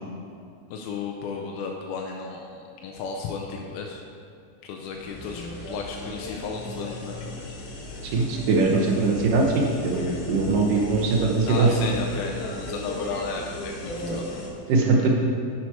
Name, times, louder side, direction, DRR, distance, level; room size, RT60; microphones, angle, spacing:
voice 1, 0.7-4.0 4.6-7.6 11.5-14.2, left 5 dB, 80° left, 1 dB, 2.5 m, -34 dB
sound 1, 4.9-14.5, left 1 dB, 65° left, 1.6 m, -36 dB
voice 2, 8.1-11.7 14.1-14.2 14.7-15.1, right 3 dB, 70° right, 0 dB, 2.3 m, -21 dB
12.0 x 6.2 x 4.3 m, 2.4 s
omnidirectional pair, 4.4 m